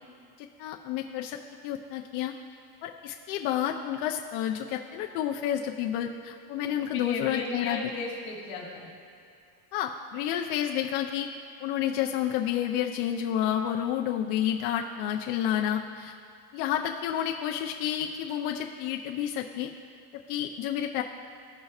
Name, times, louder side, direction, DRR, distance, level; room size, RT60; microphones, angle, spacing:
voice 1, 0.4-1.4 1.6-2.3 2.8-7.8 9.7-11.3 11.6-16.1 16.5-19.7 20.1-21.0, left 10 dB, 90° left, 1 dB, 0.6 m, -30 dB
voice 2, 6.9-8.9, left 3 dB, 45° left, -3 dB, 1.7 m, -35 dB
14.5 x 5.3 x 2.4 m, 2.5 s
cardioid pair, 170°, 49 cm